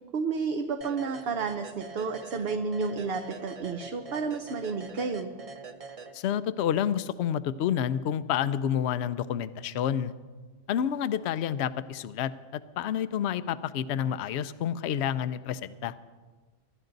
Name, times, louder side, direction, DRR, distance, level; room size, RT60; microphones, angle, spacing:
voice 1, 0.1-5.3, right 4 dB, 60° right, 6 dB, 0.9 m, -31 dB
sound 1, 0.8-6.6, right 4 dB, 35° right, 0.6 m, -44 dB
voice 2, 6.1-10.1 10.7-15.9, left 9 dB, 70° left, 14 dB, 0.8 m, -29 dB
24.5 x 12.0 x 4.0 m, 1.4 s
omnidirectional pair, 1.2 m